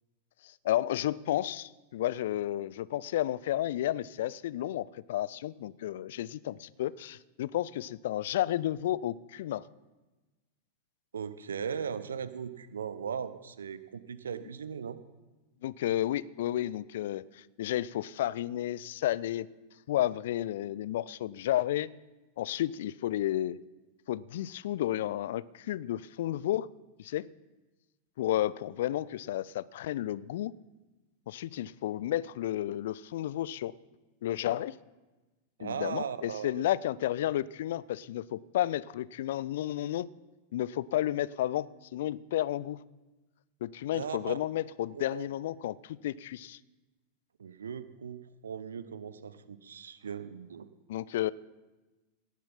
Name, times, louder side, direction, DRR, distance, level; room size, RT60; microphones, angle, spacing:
voice 1, 0.6-9.6 15.6-19.5 19.9-21.9 22.4-23.6 24.1-26.7 27.0-27.3 28.2-30.5 31.3-33.7 34.2-34.7 35.6-40.1 40.5-42.8 43.6-46.6 50.9-51.3, left 13 dB, 55° left, 20 dB, 0.4 m, -32 dB
voice 2, 11.1-15.0 35.6-36.6 43.9-44.4 44.9-45.3 47.4-50.7, right 7 dB, 70° right, 15 dB, 0.7 m, -38 dB
18.0 x 7.3 x 5.7 m, 1.2 s
figure-of-eight pair, 90°, 0 cm